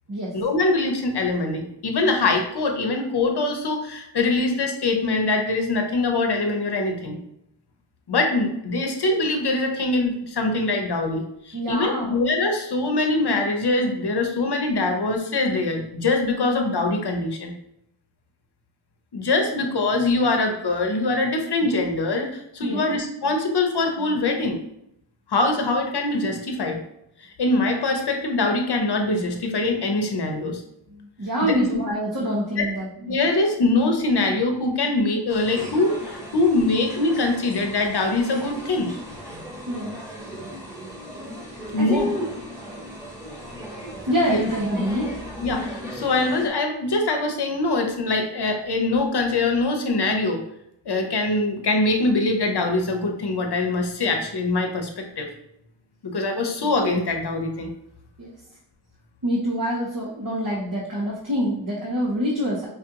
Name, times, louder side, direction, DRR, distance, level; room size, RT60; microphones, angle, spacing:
voice 1, 0.3-7.2 8.1-17.6 19.1-24.6 25.3-26.8 27.2-30.6 31.5-31.7 32.6-32.7 33.1-38.9 41.7-42.1 44.3-44.4 45.4-50.4 50.9-55.3 56.0-57.7, left 2 dB, 60° left, 3 dB, 0.8 m, -23 dB
voice 2, 11.5-12.2 22.6-22.8 30.9-33.1 39.7-40.0 41.5-42.3 44.1-45.1 58.2-58.3 59.2-62.7, equal, 45° right, -5 dB, 1.1 m, -26 dB
sound 1, 35.3-46.5, equal, 5° right, 1.3 m, -37 dB
5.2 x 2.5 x 2.9 m, 0.79 s
cardioid pair, 55°, 44 cm